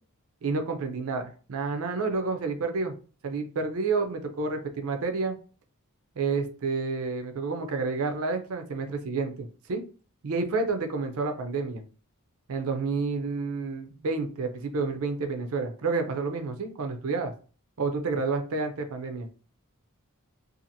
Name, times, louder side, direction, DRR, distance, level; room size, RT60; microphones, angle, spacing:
voice 1, 0.4-2.9 3.2-5.4 6.2-9.8 10.2-11.8 12.5-17.3 17.8-19.3, right 4 dB, 65° right, 5 dB, 0.5 m, -29 dB
2.7 x 2.4 x 2.6 m, 0.38 s
head